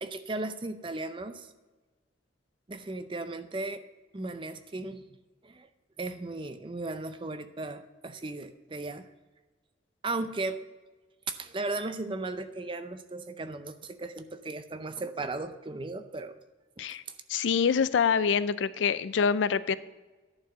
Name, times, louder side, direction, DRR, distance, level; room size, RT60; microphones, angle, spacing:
voice 1, 0.0-1.5 2.7-3.8 4.1-5.2 5.4-5.7 6.0-9.1 10.0-10.6 11.3-16.4 16.8-16.9, right 2 dB, 25° right, 10 dB, 0.5 m, -36 dB
voice 2, 17.3-19.8, left 6 dB, 80° left, 16 dB, 0.4 m, -25 dB
11.0 x 4.7 x 6.1 m, 1.2 s
head